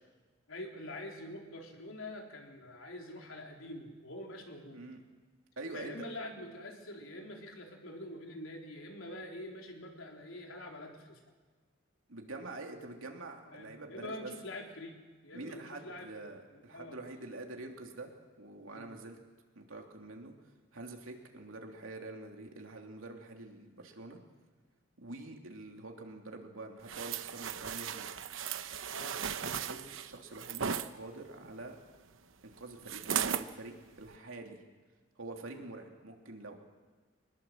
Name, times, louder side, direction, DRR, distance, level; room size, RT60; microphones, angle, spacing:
voice 1, 0.5-4.8 5.7-11.2 13.5-16.1 16.5-17.0 18.7-18.9 28.9-29.2 29.7-29.9 35.5-35.7, left 1 dB, 90° left, 1 dB, 3.9 m, -45 dB
voice 2, 5.6-6.1 12.1-14.3 15.3-19.2 19.5-20.3 20.7-24.2 25.0-28.1 29.4-31.8 32.4-34.6 35.2-36.6, right 2 dB, 90° right, 2 dB, 3.1 m, -46 dB
sound 1, 26.9-30.9 32.9-33.5 34.0-34.1, right 7 dB, 75° right, 0.9 m, -36 dB
23.5 x 20.5 x 7.5 m, 1.4 s
head